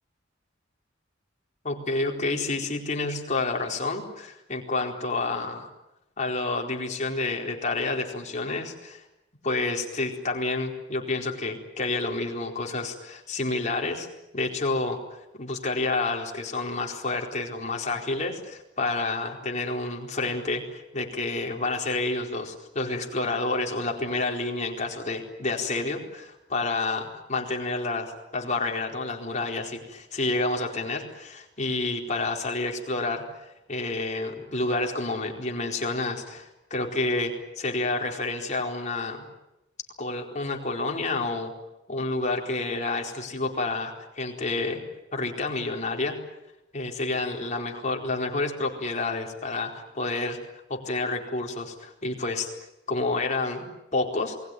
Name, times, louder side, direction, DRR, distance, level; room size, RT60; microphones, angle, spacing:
voice 1, 1.6-5.7 6.2-9.0 9.4-14.1 14.3-33.2 33.7-39.2 40.0-41.5 41.9-44.8 45.1-46.2 46.7-50.4 50.7-52.5 52.9-53.6 53.9-54.4, left 3 dB, 40° left, 1 dB, 4.4 m, -29 dB
28.0 x 20.5 x 9.3 m, 0.91 s
head